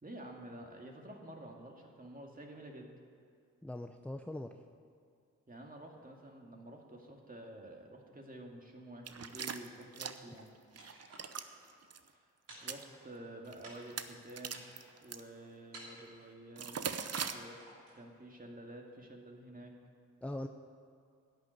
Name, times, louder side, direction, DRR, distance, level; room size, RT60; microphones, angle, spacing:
voice 1, 0.0-2.9 5.5-10.5 12.1-12.3 12.6-14.7 15.0-16.9 17.3-17.6 17.9-19.7, right 1 dB, 25° right, 1 dB, 2.2 m, -50 dB
voice 2, 3.6-4.6 20.2-20.5, left 1 dB, 5° left, 6 dB, 0.6 m, -41 dB
sound 1, 9.1-10.4 10.8-11.5 11.8-12.0 12.5-12.8 13.5-13.6 13.9-15.2 16.6-17.3, right 6 dB, 50° right, 0.8 m, -40 dB
sound 2, 10.8-11.7 12.5-13.3 13.6-14.1 14.5-15.0 15.7-16.3 17.1-18.0, right 2 dB, 80° right, 3.0 m, -53 dB
11.5 x 6.7 x 9.3 m, 2.3 s
cardioid pair, 45°, 32 cm